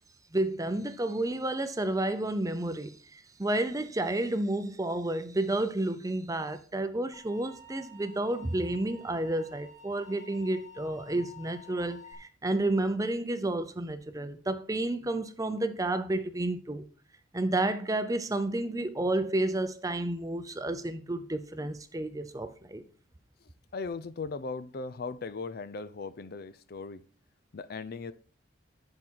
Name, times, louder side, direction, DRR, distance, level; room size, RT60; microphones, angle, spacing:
voice 1, 0.3-16.8 17.3-22.8, right 1 dB, 15° right, 0.6 m, -31 dB
sound 1, 7.1-12.1, left 3 dB, 10° left, 1.6 m, -51 dB
voice 2, 23.7-27.0 27.5-28.1, left 4 dB, 50° left, 0.5 m, -38 dB
11.0 x 4.9 x 4.6 m
head